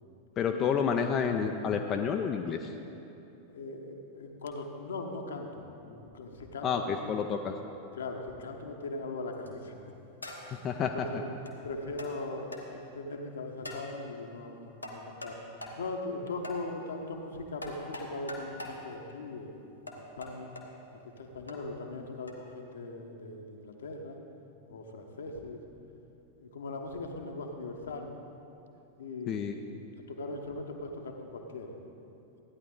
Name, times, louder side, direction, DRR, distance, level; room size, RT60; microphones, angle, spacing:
voice 1, 0.4-2.7 6.6-7.5 10.6-10.9 29.3-29.5, left 7 dB, 30° left, 4 dB, 0.6 m, -29 dB
voice 2, 3.5-7.2 7.9-9.7 10.4-11.2 11.6-15.4 15.8-19.6 20.0-20.5 20.9-24.2 24.7-25.6 26.4-28.3 29.0-29.4 30.1-31.7, left 2 dB, 65° left, 3 dB, 1.1 m, -40 dB
sound 1, 9.3-9.6 10.2-10.6 11.5-11.6 12.0-12.1 12.5-12.6 13.6-13.9 14.8-15.4 15.6-15.8 16.4-16.6 17.6-18.8 19.9-20.6 21.5-21.6 22.3-22.4, left 1 dB, 85° left, 1.3 m, -42 dB
15.0 x 10.0 x 3.8 m, 2.8 s
figure-of-eight pair, 90°, 0 cm